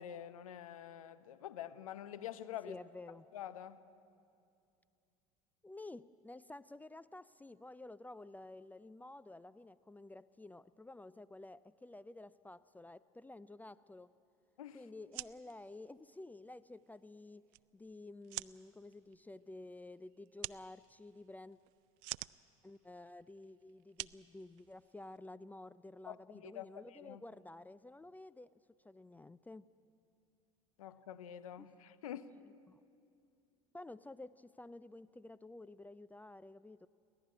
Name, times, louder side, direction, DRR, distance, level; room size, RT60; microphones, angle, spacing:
voice 1, 0.0-2.8 3.3-3.8 14.6-14.8 26.1-27.2 30.8-32.3, left 10 dB, 80° left, 13 dB, 0.9 m, -47 dB
voice 2, 2.6-3.3 5.6-14.1 14.7-21.6 22.6-28.5 28.8-29.7 31.6-31.7 32.7-32.8 33.7-36.9, left 2 dB, 10° left, 15 dB, 0.5 m, -52 dB
sound 1, 15.0-25.2, right 22 dB, 60° right, 0.4 m, -50 dB
29.5 x 12.0 x 9.6 m, 2.5 s
hypercardioid pair, 75°, 18 cm